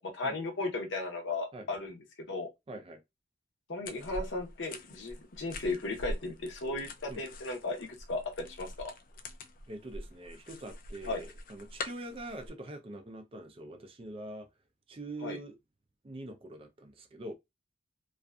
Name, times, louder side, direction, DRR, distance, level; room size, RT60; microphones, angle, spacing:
voice 1, 0.0-2.0 2.3-2.5 3.7-8.9 11.0-11.2 15.2-15.4, left 2 dB, 70° left, 0.7 m, -36 dB
voice 2, 2.7-3.0 7.1-7.2 9.7-14.5 14.9-15.6 16.0-17.3, right 2 dB, 30° right, 0.4 m, -44 dB
sound 1, 3.8-12.5, left 2 dB, 45° left, 0.4 m, -45 dB
2.6 x 2.4 x 2.2 m
head